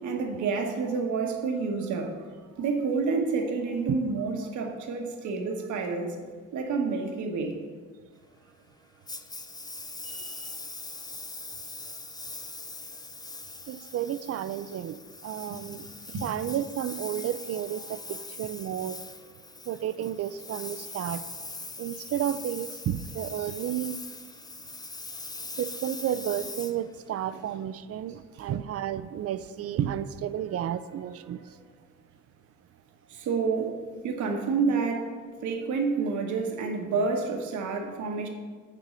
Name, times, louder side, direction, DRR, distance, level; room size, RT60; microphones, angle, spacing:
voice 1, 0.0-2.1 2.6-6.2 6.5-7.6 15.5-15.6 16.1-16.2 28.3-28.4 33.1-35.1 35.4-38.3, right 4 dB, 75° right, 3 dB, 1.1 m, -29 dB
Engine, 9.1-27.5, left 3 dB, 15° left, 0.5 m, -41 dB
voice 2, 10.0-10.5 13.7-15.9 16.2-19.0 19.7-21.3 21.8-24.0 25.6-31.5, right 10 dB, 55° right, 13 dB, 0.4 m, -32 dB
6.7 x 4.5 x 6.2 m, 1.5 s
cardioid pair, 90°, 30 cm